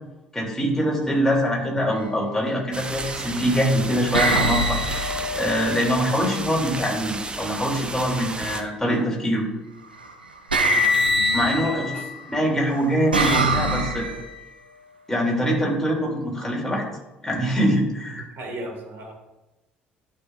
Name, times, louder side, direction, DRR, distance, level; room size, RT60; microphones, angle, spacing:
voice 1, 0.3-4.8 5.3-9.4 11.3-11.9 12.3-14.1 15.1-16.8 17.2-18.3, equal, 10° left, -3 dB, 3.0 m, -23 dB
sound 1, 1.9-2.2 3.0-3.5 4.1-6.2 8.4-8.9 10.0-10.1 10.5-12.1 12.7-14.4, equal, 85° right, 0.6 m, -24 dB
sound 2, 2.7-8.6, right 3 dB, 20° right, 0.8 m, -33 dB
voice 2, 10.6-12.1 18.1-19.1, right 1 dB, 50° right, 0 dB, 2.4 m, -37 dB
12.0 x 5.7 x 2.6 m, 0.99 s
figure-of-eight pair, 55°, 5 cm